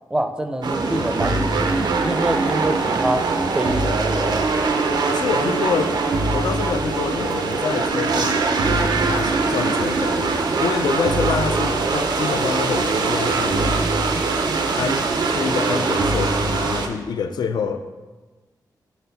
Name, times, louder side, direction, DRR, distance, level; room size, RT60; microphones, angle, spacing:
voice 1, 0.1-3.3 3.5-4.0, right 1 dB, 10° right, 6 dB, 0.4 m, -25 dB
sound 1, 0.6-16.9, right 3 dB, 70° right, 0.5 m, -22 dB
voice 2, 5.1-6.0 6.3-8.4 9.0-10.3 10.6-13.6 14.8-17.8, left 6 dB, 70° left, 9 dB, 0.4 m, -26 dB
5.9 x 4.3 x 4.0 m, 1.2 s
wide cardioid pair, 125°, 7 cm